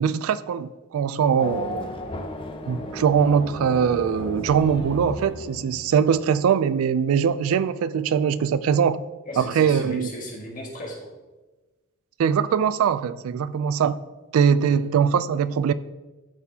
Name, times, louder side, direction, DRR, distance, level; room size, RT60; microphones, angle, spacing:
voice 1, 0.0-1.9 2.7-9.0 9.4-10.1 12.2-14.0 14.3-15.7, right 7 dB, 70° right, 0.3 m, -22 dB
Race car auto racing / Accelerating revving vroom, 1.4-6.1, left 2 dB, 25° left, 0.6 m, -35 dB
voice 2, 9.3-11.1 14.6-14.8, left 1 dB, 40° left, 1.7 m, -36 dB
12.0 x 4.2 x 2.8 m
head